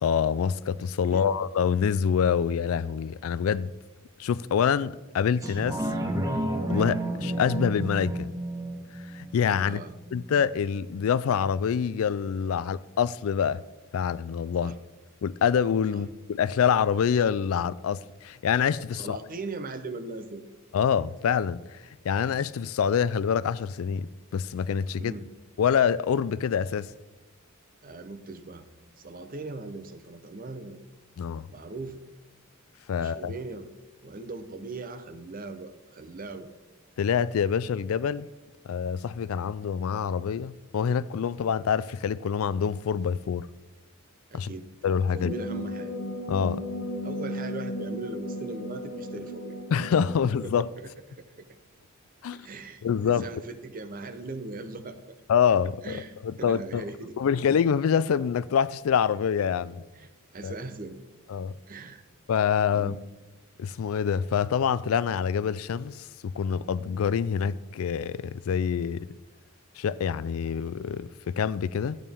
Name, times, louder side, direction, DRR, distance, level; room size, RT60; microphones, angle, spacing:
voice 1, 0.0-3.7 4.2-5.8 6.7-8.3 9.1-9.8 10.1-13.6 13.9-14.8 15.2-19.2 20.7-21.6 22.0-25.1 25.6-26.9 31.2-31.5 32.9-33.3 37.0-38.3 38.7-43.5 44.3-44.5 44.8-45.3 46.3-46.6 49.7-50.7 52.2-52.5 52.8-53.3 55.3-56.0 56.2-56.9 57.2-59.8 60.4-60.5 61.3-61.5 62.3-63.0 63.6-69.1 69.8-72.0, left 7 dB, 75° left, 0.3 m, -26 dB
voice 2, 1.0-1.4 9.6-9.9 14.6-14.7 15.9-16.0 18.9-20.4 24.9-25.3 27.8-28.7 29.0-30.8 31.5-32.0 33.0-33.7 34.0-36.5 44.3-44.7 45.1-45.9 47.0-49.6 50.4-51.5 52.3-55.0 55.8-57.4 59.9-61.0 61.7-62.0 62.7-63.1, right 3 dB, 40° right, 0.7 m, -39 dB
sound 1, 5.4-10.4 10.9-11.0, right 1 dB, 15° right, 1.0 m, -31 dB
sound 2, 45.2-50.5, equal, 55° left, 1.0 m, -35 dB
12.5 x 9.0 x 3.5 m
head